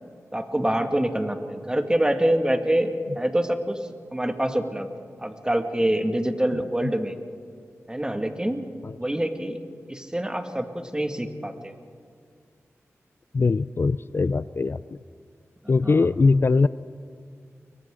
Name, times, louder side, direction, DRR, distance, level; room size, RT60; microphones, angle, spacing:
voice 1, 0.3-4.9 5.2-7.1 7.9-8.7 9.0-9.6 9.9-11.7 15.8-16.1, right 1 dB, 15° right, 5 dB, 2.0 m, -25 dB
voice 2, 13.3-14.8 15.7-16.7, left 4 dB, 45° left, 16 dB, 0.4 m, -21 dB
29.5 x 23.0 x 3.8 m, 2.2 s
cardioid pair, 55°, 5 cm